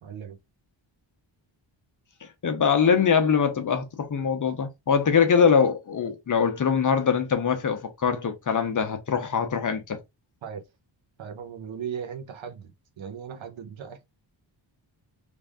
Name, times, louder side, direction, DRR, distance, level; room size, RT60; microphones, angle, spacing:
voice 1, 0.0-0.4 10.4-10.6 11.2-12.7 13.0-14.0, right 7 dB, 70° right, 0.9 m, -37 dB
voice 2, 2.4-10.0, left 6 dB, 40° left, 0.7 m, -23 dB
3.4 x 2.5 x 3.5 m
wide cardioid pair, 170°, 48 cm